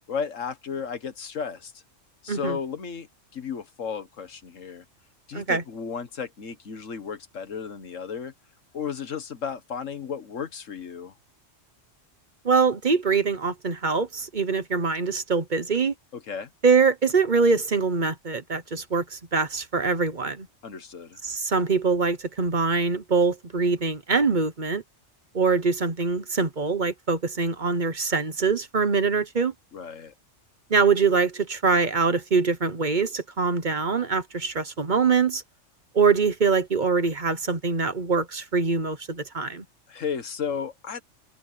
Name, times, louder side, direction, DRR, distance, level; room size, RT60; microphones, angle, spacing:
voice 1, 0.1-1.8 2.2-3.1 3.3-4.8 5.3-8.3 8.7-11.1 16.1-16.5 20.6-21.2 29.7-30.1 39.9-41.0, left 6 dB, 85° left, 1.8 m, -34 dB
voice 2, 5.3-5.6 12.4-15.9 16.6-20.5 21.2-24.8 25.3-29.5 30.7-35.4 35.9-39.6, right 4 dB, 40° right, 1.1 m, -23 dB
omnidirectional pair, 1.3 m